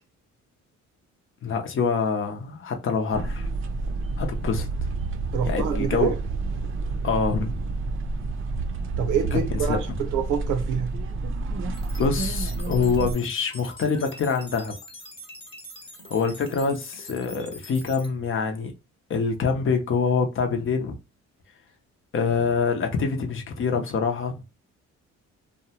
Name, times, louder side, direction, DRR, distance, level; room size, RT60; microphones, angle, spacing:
voice 1, 1.4-3.5 4.2-4.7 5.5-6.1 7.0-7.6 9.3-9.8 12.0-14.7 16.1-18.7 19.1-20.9 22.1-24.4, left 5 dB, 45° left, 0.7 m, -25 dB
sound 1, 3.1-13.1, right 3 dB, 45° right, 0.5 m, -29 dB
voice 2, 5.3-6.2 9.0-10.9, right 8 dB, 90° right, 0.6 m, -26 dB
sound 2, 11.7-18.1, equal, 15° left, 0.9 m, -44 dB
2.7 x 2.2 x 2.7 m
cardioid pair, 90°, 30 cm